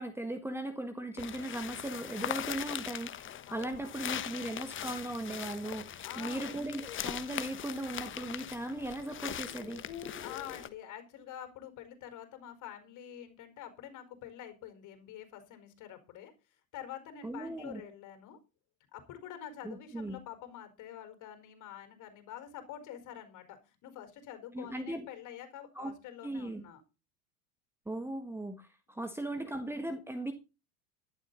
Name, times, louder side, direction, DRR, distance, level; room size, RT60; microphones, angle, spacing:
voice 1, 0.0-9.8 17.2-17.8 19.6-20.2 24.5-25.1 25.7-25.9 26.2-26.6 27.9-30.3, right 1 dB, 5° right, 8 dB, 1.6 m, -38 dB
sound 1, 1.2-10.7, left 10 dB, 30° left, 1.2 m, -40 dB
voice 2, 3.4-4.2 6.0-6.5 10.2-16.3 16.7-18.4 18.9-26.8 29.0-29.4, left 10 dB, 45° left, 9 dB, 4.6 m, -47 dB
sound 2, 5.9-7.1 8.6-8.7 9.3-10.7, left 9 dB, 60° left, 3.6 m, -49 dB
13.5 x 11.5 x 4.1 m, 0.30 s
figure-of-eight pair, 80°, 43 cm